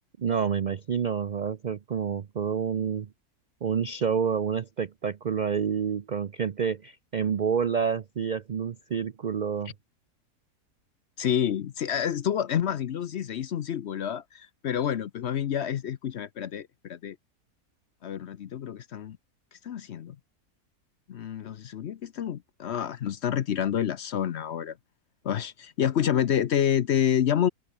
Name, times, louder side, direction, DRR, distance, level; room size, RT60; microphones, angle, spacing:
voice 1, 0.2-3.1 3.6-9.7, right 7 dB, 75° right, 0.4 m, -28 dB
voice 2, 11.2-17.2 18.0-19.2 19.6-20.2 21.1-24.8 25.2-27.5, left 9 dB, 55° left, 0.8 m, -28 dB
open air
omnidirectional pair, 1.6 m